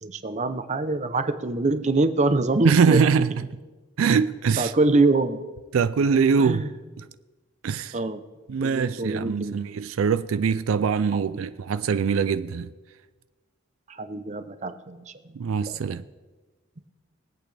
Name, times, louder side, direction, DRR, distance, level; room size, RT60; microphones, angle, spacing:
voice 1, 0.0-3.0 4.6-5.4 6.4-6.7 7.9-8.2 8.6-9.6 11.1-11.4 13.9-15.1 15.7-15.8, right 2 dB, 35° right, 0.7 m, -24 dB
voice 2, 2.6-3.3 4.0-4.7 5.7-6.6 7.6-8.0 8.5-12.7 15.4-16.0, right 6 dB, 85° right, 0.4 m, -23 dB
23.0 x 8.4 x 3.4 m
head